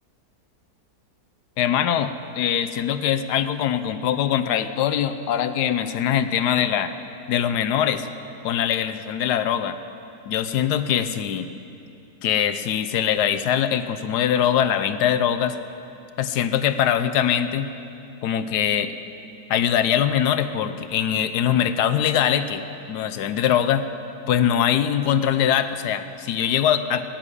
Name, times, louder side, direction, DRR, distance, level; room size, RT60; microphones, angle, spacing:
voice 1, 1.6-6.9 7.3-8.1 8.4-9.8 10.3-11.5 12.2-15.6 16.2-17.7 18.2-18.9 19.5-22.6 22.9-23.8 24.3-27.0, left 9 dB, 80° left, 11 dB, 1.2 m, -22 dB
17.0 x 7.5 x 9.8 m, 2.7 s
omnidirectional pair, 1.8 m